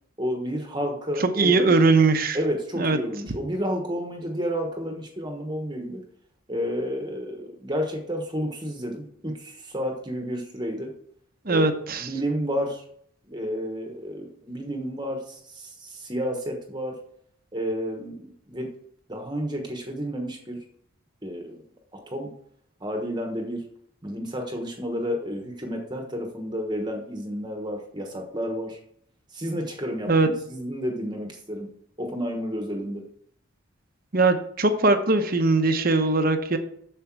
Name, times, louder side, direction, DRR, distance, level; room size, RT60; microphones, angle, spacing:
voice 1, 0.2-1.9 2.3-6.0 6.5-10.9 11.5-12.8 13.3-17.0 17.5-18.7 19.1-20.6 21.2-21.6 21.9-22.3 22.8-23.6 24.0-28.8 29.3-31.7 32.0-33.0, equal, 20° right, 3 dB, 1.2 m, -31 dB
voice 2, 1.2-2.4 2.8-3.0 11.5-12.1 30.1-30.3 34.1-36.6, right 3 dB, 45° right, 7 dB, 0.9 m, -20 dB
7.8 x 6.7 x 4.7 m, 0.65 s
head